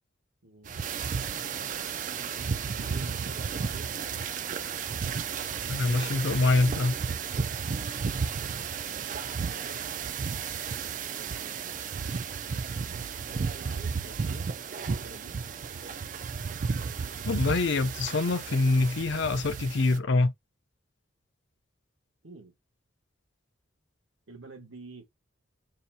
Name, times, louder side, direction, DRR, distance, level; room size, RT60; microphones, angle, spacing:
voice 1, 0.4-0.8 2.4-4.0 8.7-9.1 11.0-11.6 13.3-14.5 14.9-15.4 22.2-22.5 24.3-25.1, right 3 dB, 80° right, 1.7 m, -48 dB
sound 1, 0.6-20.0, right 6 dB, 40° right, 0.4 m, -33 dB
voice 2, 5.7-6.9 17.3-20.3, left 3 dB, 60° left, 0.5 m, -25 dB
5.5 x 2.4 x 2.7 m
head